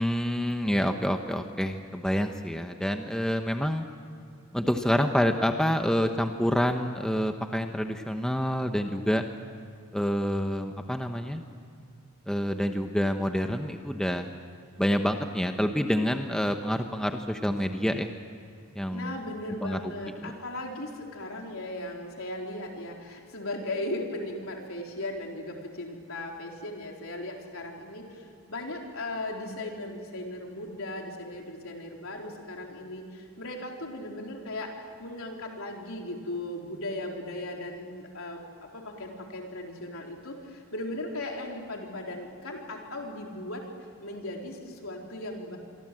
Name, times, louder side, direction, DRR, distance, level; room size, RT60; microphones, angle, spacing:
voice 1, 0.0-3.8 4.5-9.2 9.9-11.4 12.3-14.3 14.8-18.1 18.8-19.1 19.6-19.9 20.2-20.3, equal, 5° left, 5 dB, 0.9 m, -27 dB
voice 2, 18.9-43.6 44.0-45.6, left 1 dB, 70° left, 1 dB, 4.1 m, -37 dB
28.0 x 23.5 x 7.7 m, 2.4 s
head